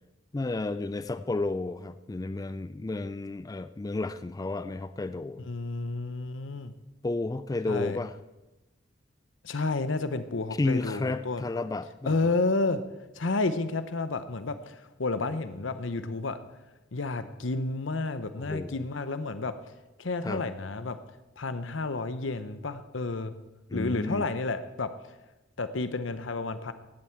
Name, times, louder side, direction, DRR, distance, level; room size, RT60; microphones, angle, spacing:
voice 1, 0.3-5.5 7.0-8.2 10.6-12.1 18.4-18.7 20.2-20.4 23.7-24.3, left 2 dB, 20° left, 13 dB, 0.4 m, -32 dB
voice 2, 5.4-6.7 7.7-8.0 9.4-11.4 12.0-12.8 13.2-16.4 16.9-19.5 20.0-21.0 21.4-23.3 23.7-24.9 25.6-26.7, left 3 dB, 75° left, 12 dB, 0.8 m, -31 dB
16.5 x 11.0 x 4.6 m, 1.1 s
head